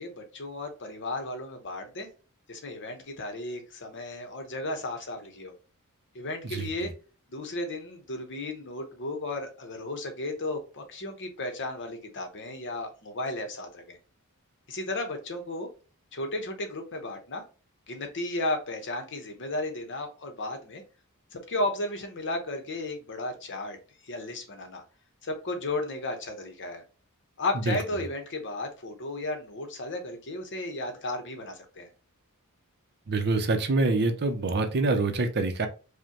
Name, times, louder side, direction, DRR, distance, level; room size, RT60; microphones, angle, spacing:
voice 1, 0.0-2.1 2.5-5.5 6.1-6.9 7.3-14.0 14.7-15.7 16.1-17.4 17.9-20.8 21.3-23.8 24.0-24.8 25.2-26.8 27.4-31.9, left 2 dB, 55° left, 5 dB, 0.9 m, -34 dB
voice 2, 6.4-6.9 27.7-27.8 33.1-35.7, right 3 dB, 50° right, 6 dB, 0.6 m, -26 dB
5.1 x 2.2 x 2.9 m, 0.35 s
head